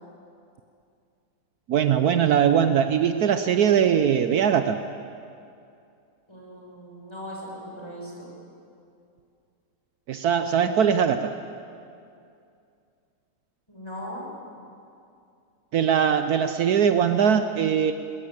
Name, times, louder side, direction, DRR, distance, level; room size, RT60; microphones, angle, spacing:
voice 1, 1.7-4.8 10.1-11.3 15.7-17.9, right 8 dB, 70° right, 9 dB, 1.2 m, -21 dB
voice 2, 6.3-8.3 13.7-14.2, equal, 15° left, -3 dB, 6.2 m, -38 dB
21.0 x 21.0 x 8.7 m, 2.5 s
omnidirectional pair, 1.8 m